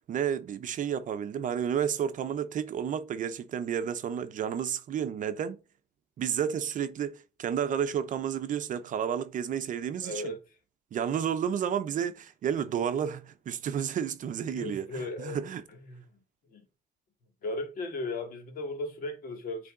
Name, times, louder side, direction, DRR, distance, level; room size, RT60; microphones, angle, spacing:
voice 1, 0.1-5.6 6.2-10.3 10.9-15.6, right 8 dB, 50° right, 0.7 m, -31 dB
voice 2, 10.0-10.6 14.5-15.4 15.7-16.2 16.5-16.6 17.4-19.7, left 2 dB, 60° left, 2.3 m, -36 dB
8.4 x 3.4 x 3.9 m
cardioid pair, 110°, 17 cm